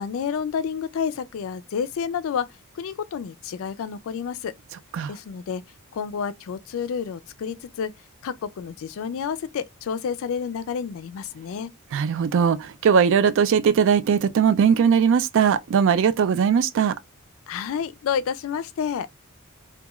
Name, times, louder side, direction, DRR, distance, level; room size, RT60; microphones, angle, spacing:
voice 1, 0.0-2.5 2.7-4.5 5.1-5.6 5.9-7.9 8.2-11.7 17.5-19.1, left 7 dB, 65° left, 0.3 m, -29 dB
voice 2, 11.9-17.0, right 7 dB, 60° right, 0.3 m, -19 dB
2.9 x 2.3 x 2.3 m
head